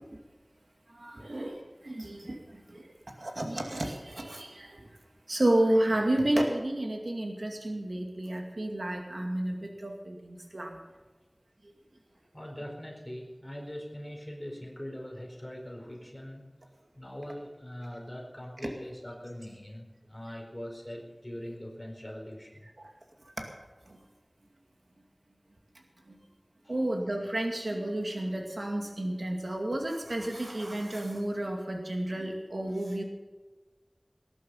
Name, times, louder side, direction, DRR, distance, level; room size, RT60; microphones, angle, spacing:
voice 1, 0.9-2.9 3.2-4.9 5.3-10.8 22.8-22.9 23.4-23.5 26.7-33.0, right 1 dB, 85° right, 2 dB, 2.3 m, -31 dB
voice 2, 12.3-16.5 17.0-22.7, equal, 25° left, 0 dB, 4.6 m, -42 dB
20.0 x 11.5 x 5.6 m, 1.3 s
wide cardioid pair, 40°, 0 cm